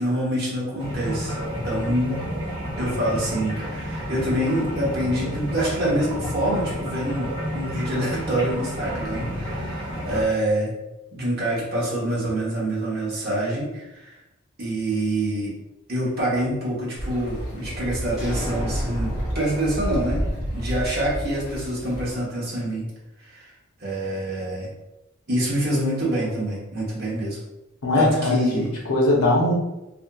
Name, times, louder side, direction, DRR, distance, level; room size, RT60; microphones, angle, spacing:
voice 1, 0.0-1.4 1.6-2.2 2.8-10.7 11.1-14.1 14.6-15.6 15.9-20.2 20.5-22.9 23.2-23.5 23.8-24.7 25.3-27.4 27.9-28.7, right 1 dB, 45° right, -5 dB, 0.9 m, -26 dB
sound 1, 0.8-10.2, equal, 20° right, 0.7 m, -30 dB
sound 2, 17.0-22.1, equal, 45° left, 1.1 m, -31 dB
sound 3, 18.2-21.9, equal, ahead, 1.1 m, -34 dB
voice 2, 27.8-29.5, left 2 dB, 90° left, -3 dB, 0.6 m, -20 dB
2.7 x 2.4 x 2.2 m, 0.98 s
head